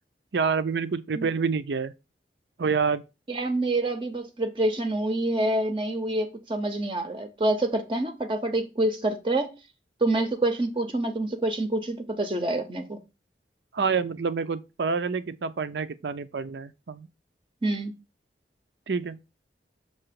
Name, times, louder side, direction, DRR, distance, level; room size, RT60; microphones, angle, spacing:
voice 1, 0.3-1.9 2.6-3.0 13.7-17.1 18.9-19.2, right 5 dB, 80° right, 0.5 m, -27 dB
voice 2, 3.3-9.5 10.0-13.0 17.6-17.9, right 2 dB, 30° right, 0.6 m, -27 dB
6.6 x 2.9 x 5.8 m
head